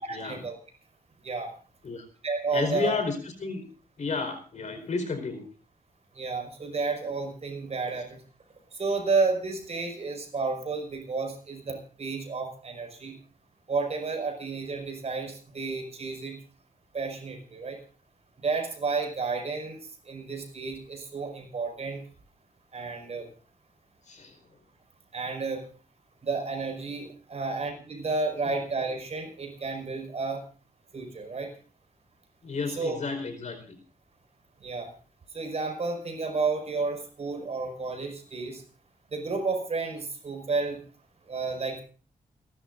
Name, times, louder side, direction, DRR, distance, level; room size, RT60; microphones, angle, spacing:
voice 1, 0.1-0.5 1.2-1.5 2.2-2.9 6.2-8.2 8.8-13.2 13.7-16.4 16.9-17.8 18.4-19.8 20.1-22.0 22.7-23.3 25.1-25.6 26.2-30.4 30.9-31.5 32.8-33.0 34.6-34.9 35.3-38.6 39.1-40.8 41.3-41.8, right 4 dB, 45° right, 4 dB, 5.6 m, -31 dB
voice 2, 2.5-3.6 4.0-5.4 24.0-24.4 28.4-28.5 32.4-33.8, left 4 dB, 55° left, 6 dB, 4.7 m, -32 dB
29.0 x 12.5 x 2.6 m, 0.39 s
cardioid pair, 100°, 14 cm